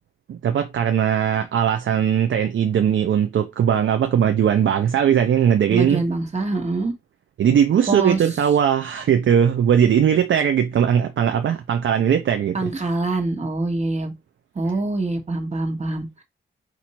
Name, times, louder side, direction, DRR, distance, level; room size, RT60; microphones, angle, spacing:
voice 1, 0.3-6.0 7.4-12.7, right 8 dB, 70° right, 0.5 m, -19 dB
voice 2, 5.7-6.9 7.9-8.2 12.5-14.1 14.5-16.2, right 2 dB, 35° right, 1.3 m, -24 dB
4.4 x 2.6 x 4.2 m
wide cardioid pair, 105°, 21 cm